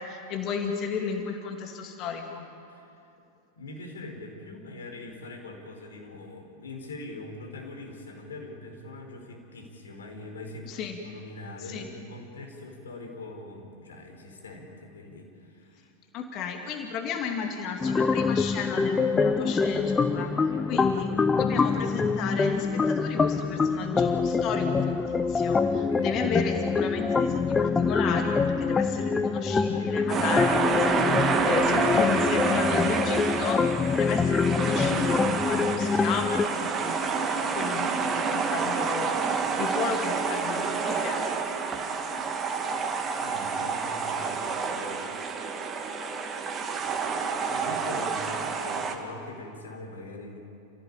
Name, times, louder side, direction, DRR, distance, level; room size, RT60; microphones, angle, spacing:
voice 1, 0.0-2.5 10.7-11.0 11.7-11.9 16.1-20.3 20.7-21.1 21.4-31.0 31.4-33.7 34.0-37.3 37.5-41.2, left 6 dB, 35° left, 3 dB, 2.6 m, -34 dB
voice 2, 3.5-15.9 20.5-20.9 25.8-26.2 29.7-30.4 43.2-45.1 47.5-50.4, left 2 dB, 65° left, 2 dB, 4.8 m, -42 dB
sound 1, 17.8-36.5, left 4 dB, 15° left, 0.9 m, -25 dB
sound 2, 30.1-48.9, right 5 dB, 20° right, 2.3 m, -28 dB
29.5 x 16.0 x 8.9 m, 2.7 s
figure-of-eight pair, 90°, 0 cm